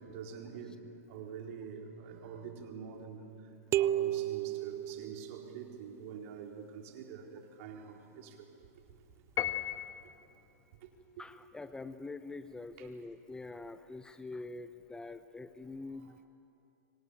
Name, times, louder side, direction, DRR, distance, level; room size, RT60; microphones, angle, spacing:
voice 1, 0.0-3.3 3.7-8.5 12.8-12.9, right 6 dB, 55° right, 2 dB, 4.3 m, -46 dB
sound 1, 3.7-5.6, right 12 dB, 30° right, 0.6 m, -32 dB
Piano, 9.4-10.3, left 12 dB, 35° left, 1.4 m, -35 dB
voice 2, 11.2-16.2, left 3 dB, 10° left, 11 dB, 0.9 m, -45 dB
26.0 x 25.0 x 8.5 m, 2.7 s
hypercardioid pair, 115°, 9 cm